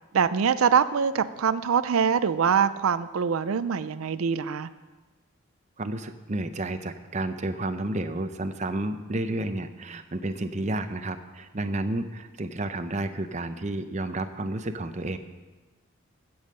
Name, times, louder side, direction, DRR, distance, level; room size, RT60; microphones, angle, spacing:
voice 1, 0.1-4.7, right 6 dB, 90° right, 14 dB, 0.5 m, -24 dB
voice 2, 5.8-15.2, right 2 dB, 35° right, 9 dB, 0.6 m, -31 dB
16.0 x 7.1 x 6.5 m, 1.3 s
head